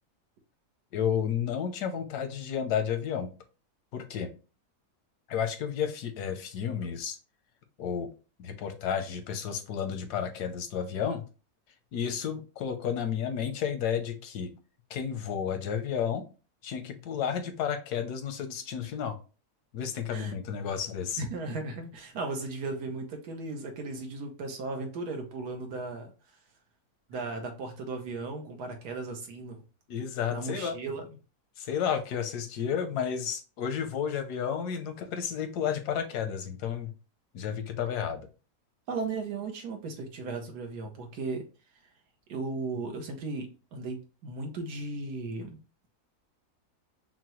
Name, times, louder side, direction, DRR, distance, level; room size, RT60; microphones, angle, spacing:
voice 1, 0.9-3.3 3.9-4.3 5.3-7.2 7.8-8.1 8.4-11.2 11.9-14.5 14.9-16.2 16.6-19.2 19.7-21.2 29.9-30.7 31.6-36.9 37.3-38.3, left 8 dB, 85° left, 7 dB, 1.3 m, -32 dB
voice 2, 21.2-26.1 27.1-29.6 30.3-31.1 38.9-41.4 42.3-45.6, right 3 dB, 85° right, 4 dB, 1.5 m, -36 dB
5.7 x 2.2 x 3.0 m, 0.33 s
omnidirectional pair, 1.7 m